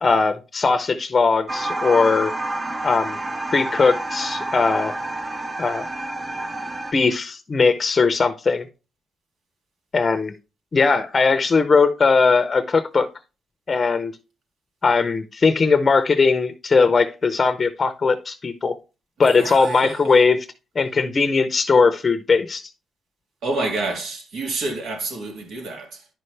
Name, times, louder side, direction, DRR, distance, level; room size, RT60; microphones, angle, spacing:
voice 1, 0.0-2.3 2.8-3.2 3.5-4.9 5.6-5.9 6.9-8.7 9.9-10.3 10.7-13.1 13.7-14.1 14.8-18.8 19.2-20.4 20.8-22.6, left 4 dB, 35° left, 0.6 m, -19 dB
sound 1, 1.5-6.9, right 2 dB, 25° right, 0.6 m, -29 dB
voice 2, 19.2-20.2 23.4-26.1, right 2 dB, 80° right, 2.1 m, -28 dB
10.0 x 5.4 x 3.2 m
cardioid pair, 105°, 0 cm